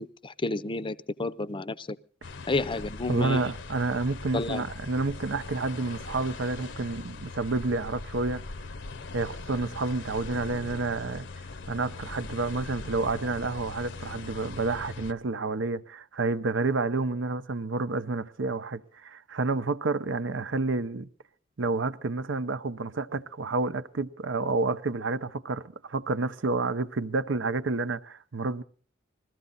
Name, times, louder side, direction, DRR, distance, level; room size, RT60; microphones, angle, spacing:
voice 1, 0.0-2.0 2.5-3.4 4.3-4.7, left 2 dB, 25° left, 0.6 m, -31 dB
sound 1, 2.2-15.1, left 3 dB, 65° left, 0.8 m, -41 dB
voice 2, 3.1-8.4 9.1-11.2 11.7-21.1 21.6-28.6, right 3 dB, 70° right, 0.7 m, -29 dB
21.5 x 14.5 x 4.0 m
head